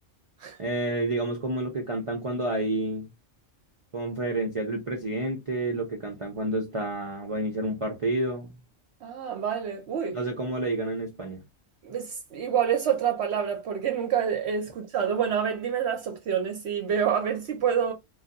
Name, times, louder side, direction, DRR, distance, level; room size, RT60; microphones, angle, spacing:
voice 1, 0.6-3.1 3.9-8.5 10.1-11.4, right 2 dB, 40° right, 0.4 m, -29 dB
voice 2, 9.0-10.2 11.8-17.9, right 8 dB, 65° right, 0.8 m, -27 dB
2.4 x 2.2 x 3.7 m
omnidirectional pair, 1.3 m